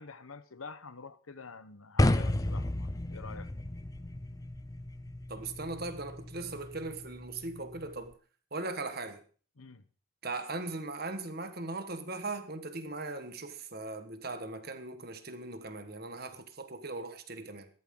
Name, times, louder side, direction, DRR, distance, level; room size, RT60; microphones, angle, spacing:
voice 1, 0.0-3.5 9.6-9.8, left 4 dB, 85° left, 1.1 m, -47 dB
sound 1, 2.0-8.1, left 1 dB, 15° left, 0.5 m, -33 dB
voice 2, 5.3-8.1 8.5-9.2 10.2-17.7, right 3 dB, 45° right, 1.6 m, -39 dB
15.5 x 13.5 x 3.9 m
head